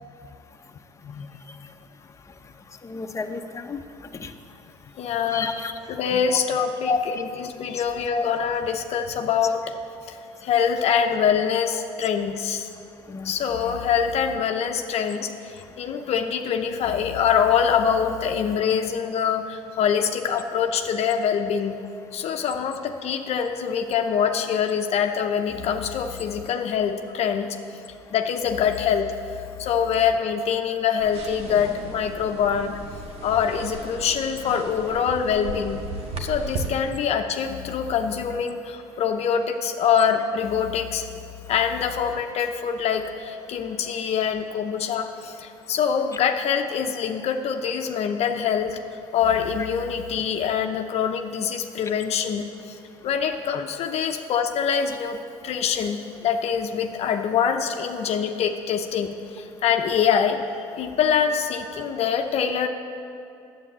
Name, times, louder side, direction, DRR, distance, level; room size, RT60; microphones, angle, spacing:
voice 1, 2.8-3.8 4.1-4.3 5.3-5.8 6.1-6.4 6.9-7.2 7.8-7.9 8.1-8.3 13.1-13.3, left 4 dB, 25° left, 5 dB, 0.9 m, -30 dB
voice 2, 5.0-5.5 5.9-9.6 10.1-12.7 13.2-21.8 22.1-27.6 28.1-32.8 33.2-35.8 36.2-48.8 49.1-52.8 53.0-62.7, left 7 dB, 55° left, 5 dB, 0.7 m, -24 dB
sound 1, 31.0-36.7, right 3 dB, 55° right, 1.5 m, -36 dB
9.9 x 8.2 x 7.4 m, 2.7 s
supercardioid pair, 80°, 12 cm